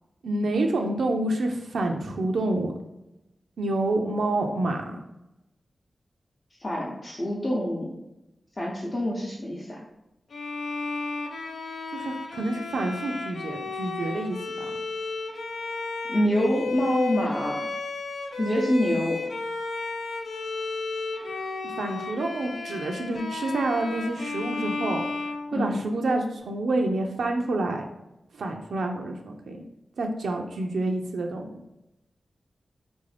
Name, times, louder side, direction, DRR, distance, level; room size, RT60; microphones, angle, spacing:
voice 1, 0.2-2.7 3.6-5.0 11.9-14.7 21.3-21.4 21.6-25.0 25.5-27.9 28.3-29.6 30.0-31.6, right 2 dB, 90° right, 2 dB, 0.4 m, -28 dB
voice 2, 6.6-7.9 8.6-9.8 16.1-17.7 18.4-19.2 25.5-25.8, equal, 35° left, -5 dB, 0.7 m, -26 dB
Bowed string instrument, 10.3-26.2, left 3 dB, 80° left, 0.4 m, -33 dB
3.7 x 2.5 x 3.2 m, 0.89 s
wide cardioid pair, 80°, 0 cm